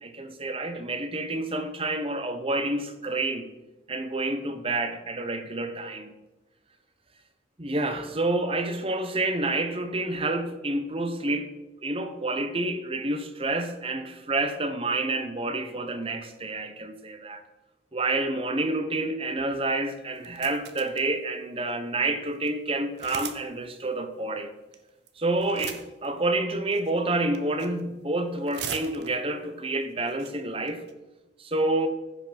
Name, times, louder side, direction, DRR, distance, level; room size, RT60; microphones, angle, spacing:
voice 1, 0.0-3.5 3.9-6.1 7.6-11.5 11.8-17.4 17.9-24.5 25.2-30.8 31.4-31.9, right 2 dB, 30° right, 8 dB, 1.1 m, -28 dB
sound 1, 20.1-21.1 21.7-21.8 22.0-22.1 22.4-22.5 23.0-23.4 23.7-23.8 24.7-25.1 25.4-26.1 26.7-27.0 27.3-27.8 28.1-29.3 29.8-29.9 30.1-30.3 30.7-30.9, right 7 dB, 65° right, 1.1 m, -38 dB
15.0 x 6.0 x 5.9 m, 1.1 s
head